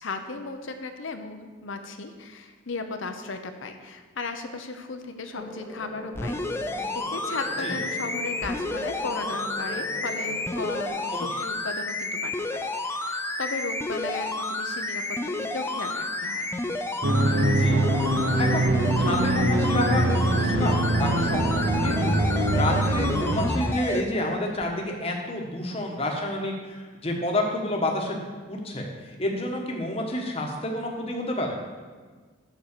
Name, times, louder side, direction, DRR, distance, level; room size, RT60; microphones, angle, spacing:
voice 1, 0.0-6.4 6.9-16.5, left 3 dB, 70° left, 7 dB, 0.7 m, -36 dB
sound 1, 5.3-10.9, left 1 dB, 5° right, 1.2 m, -41 dB
sound 2, 6.1-24.0 24.6-24.7, left 2 dB, 10° left, 0.4 m, -31 dB
sound 3, 17.0-23.5, right 1 dB, 55° right, 0.8 m, -23 dB
voice 2, 17.5-17.8 18.4-18.7 19.0-28.2 28.5-31.6, left 1 dB, 30° left, 0 dB, 1.2 m, -29 dB
7.2 x 5.8 x 6.7 m, 1.5 s
head